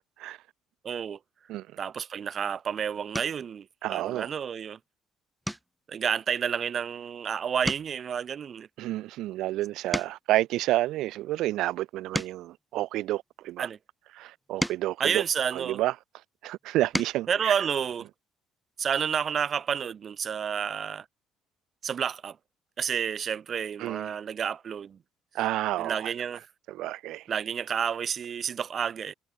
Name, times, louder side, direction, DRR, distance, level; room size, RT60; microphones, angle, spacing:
voice 1, 0.8-1.2 1.8-4.8 5.9-8.7 13.6-13.8 15.0-15.8 17.3-18.1 18.8-21.1 21.8-22.4 22.8-25.0 25.8-26.4 27.3-29.1, right 7 dB, 35° right, 1.9 m, -30 dB
sound 1, 3.1-3.5 4.0-4.4 4.7-4.9 5.4-7.2 7.5-10.4 11.1-13.5 14.2-16.0 16.6-17.3 18.7-18.8 19.1-19.3, equal, ahead, 4.4 m, -38 dB
voice 2, 3.8-4.3 8.8-13.7 14.2-15.2 15.5-15.9 16.4-17.5 23.8-24.1 25.3-26.1 26.7-27.3, right 15 dB, 65° right, 2.5 m, -30 dB
cardioid pair, 155°, 0 cm